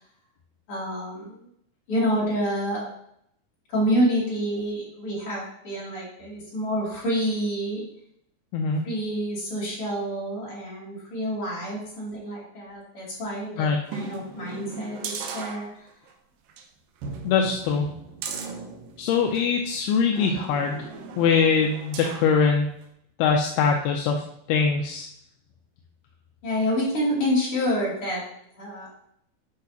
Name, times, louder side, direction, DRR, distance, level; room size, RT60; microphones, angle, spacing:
voice 1, 0.7-1.5 1.9-2.9 3.7-7.8 8.8-15.9 26.4-28.2 28.6-28.9, equal, 40° left, -6 dB, 3.0 m, -28 dB
sound 1, 13.9-16.1 16.5-16.6 17.0-19.5 20.2-22.4 22.8-22.9, right 5 dB, 80° right, 2.1 m, -37 dB
voice 2, 17.3-17.9 19.0-20.9 21.2-22.7 23.2-24.2 24.5-25.1, left 5 dB, 80° left, 2 dB, 2.5 m, -22 dB
10.5 x 5.4 x 2.8 m, 0.71 s
omnidirectional pair, 4.8 m